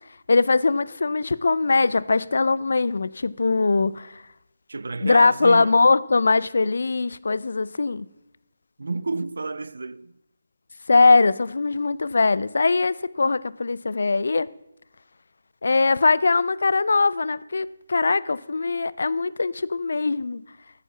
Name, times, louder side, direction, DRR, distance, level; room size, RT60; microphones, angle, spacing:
voice 1, 0.3-4.2 5.0-8.1 10.9-14.5 15.6-20.4, left 3 dB, 70° left, 0.4 m, -21 dB
voice 2, 4.7-5.7 8.8-10.1, right 3 dB, 75° right, 0.4 m, -30 dB
9.3 x 8.1 x 7.2 m
figure-of-eight pair, 155°, 0 cm